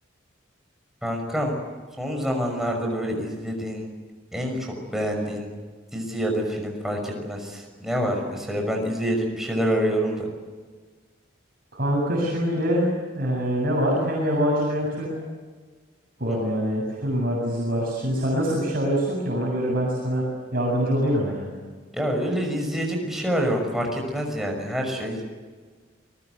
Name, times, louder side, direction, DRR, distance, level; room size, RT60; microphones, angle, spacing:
voice 1, 1.0-1.6 2.0-3.9 4.3-5.5 5.9-10.3 16.3-16.5 21.9-25.2, equal, ahead, 1 dB, 6.1 m, -27 dB
voice 2, 11.7-12.9 13.2-15.1 16.2-20.2 20.5-21.5, equal, 45° right, -4 dB, 7.7 m, -24 dB
29.5 x 21.0 x 8.2 m, 1.5 s
head